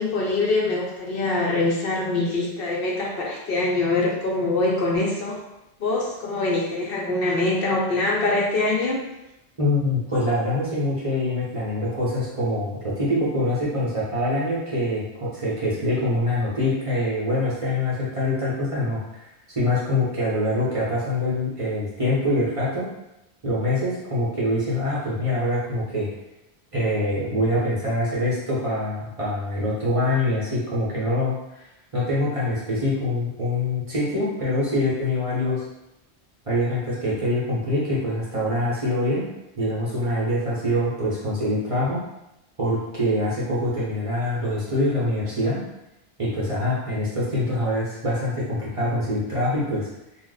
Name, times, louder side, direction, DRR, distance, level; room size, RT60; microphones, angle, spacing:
voice 1, 0.0-5.4 5.8-9.0, left 2 dB, 65° left, -3 dB, 0.8 m, -24 dB
voice 2, 9.6-19.0 19.5-22.9 23.4-26.1 26.7-31.6 31.9-35.6 36.5-39.2 39.6-42.0 42.6-45.6 46.2-49.9, left 1 dB, 35° right, -7 dB, 0.7 m, -24 dB
2.5 x 2.0 x 3.8 m, 0.92 s
omnidirectional pair, 1.1 m